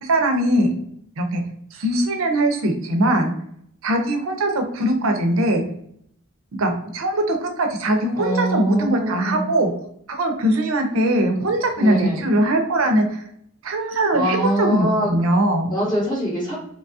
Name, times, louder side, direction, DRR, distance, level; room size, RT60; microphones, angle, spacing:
voice 1, 0.0-0.7 1.2-1.4 1.7-3.3 3.8-5.6 6.6-9.7 10.1-13.2 13.6-15.7, right 1 dB, 80° right, 4 dB, 0.6 m, -21 dB
voice 2, 8.2-9.4 11.8-12.3 14.1-15.1 15.7-16.6, right 1 dB, 10° left, -8 dB, 0.7 m, -23 dB
2.9 x 2.3 x 2.6 m, 0.69 s
head